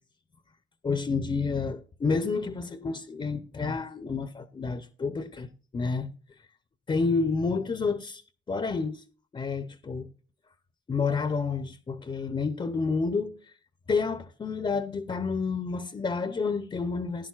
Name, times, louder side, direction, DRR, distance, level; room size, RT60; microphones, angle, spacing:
voice 1, 0.8-5.5 5.7-6.1 6.9-8.2 8.5-9.0 9.3-10.1 10.9-13.4 13.9-17.3, left 4 dB, 25° left, 0.7 m, -29 dB
16.0 x 11.0 x 2.4 m
cardioid pair, 90°, 20 cm